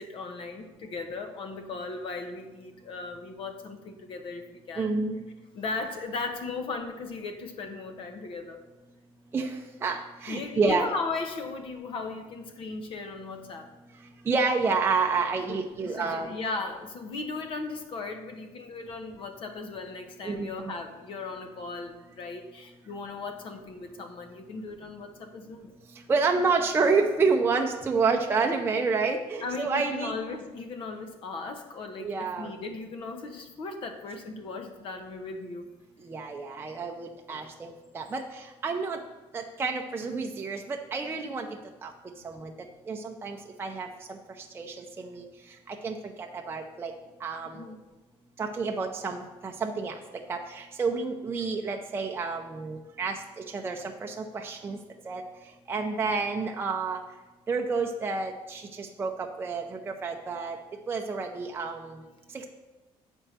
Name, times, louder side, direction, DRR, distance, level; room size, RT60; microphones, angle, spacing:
voice 1, 0.0-5.0 5.5-8.6 10.3-13.7 15.5-25.7 29.4-35.7 37.3-37.6 47.4-47.8, left 3 dB, 55° left, 6 dB, 1.1 m, -37 dB
voice 2, 4.8-5.2 9.3-9.5 9.8-10.9 14.3-16.3 20.2-20.5 26.1-30.2 32.0-32.5 36.1-37.7 37.9-38.2 38.6-39.0 39.3-41.5 41.8-41.9 42.2-42.5 42.9-43.9 44.6-45.2 45.8-46.0 46.5-46.9 47.2-47.5 48.4-49.9 50.3-53.2 53.5-54.8 55.1-55.2 55.7-57.0 57.5-59.1 59.4-60.6 60.9-61.8, right 4 dB, 20° right, 2 dB, 0.5 m, -29 dB
8.7 x 4.5 x 6.6 m, 1.1 s
cardioid pair, 145°, 11 cm